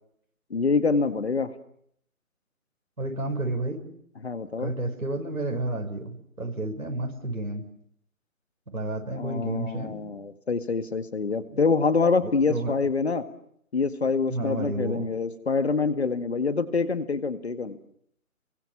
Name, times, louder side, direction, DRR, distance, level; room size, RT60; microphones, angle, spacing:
voice 1, 0.5-1.5 4.2-4.7 9.1-13.3 13.7-17.8, left 4 dB, 50° left, 11 dB, 1.9 m, -26 dB
voice 2, 3.0-3.9 4.6-7.7 8.7-10.1 11.5-11.6 12.2-12.7 14.3-15.1, right 2 dB, 90° right, 2 dB, 6.2 m, -31 dB
29.0 x 23.0 x 7.2 m, 0.70 s
figure-of-eight pair, 165°, 43 cm